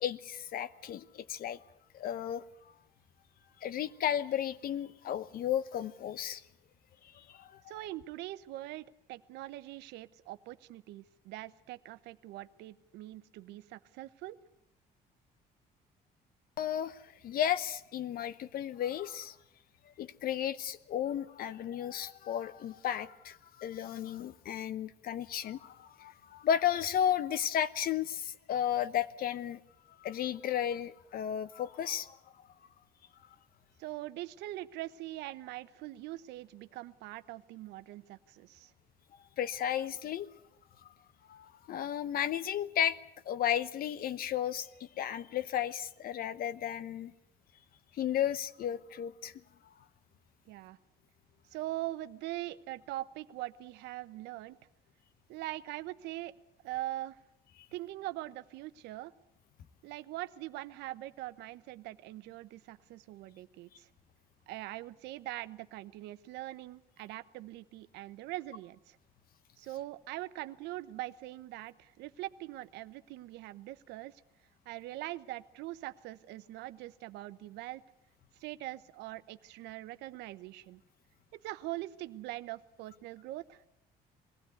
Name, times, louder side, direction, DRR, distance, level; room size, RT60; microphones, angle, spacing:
voice 1, 0.0-1.6 1.9-2.4 3.6-6.4 7.1-7.6 16.6-19.4 20.0-29.6 30.0-32.2 39.4-40.3 41.3-43.0 43.3-47.1 48.0-49.3, left 10 dB, 60° left, 15 dB, 1.0 m, -34 dB
voice 2, 7.7-14.4 33.8-38.7 50.5-50.8 51.5-54.6 55.3-56.3 56.6-57.2 57.7-59.1 59.8-63.9 64.5-69.0 69.6-74.2 74.7-77.8 78.4-80.8 81.3-83.7, right 16 dB, 90° right, 13 dB, 0.9 m, -42 dB
21.0 x 16.0 x 9.5 m, 0.81 s
cardioid pair, 110°, 17 cm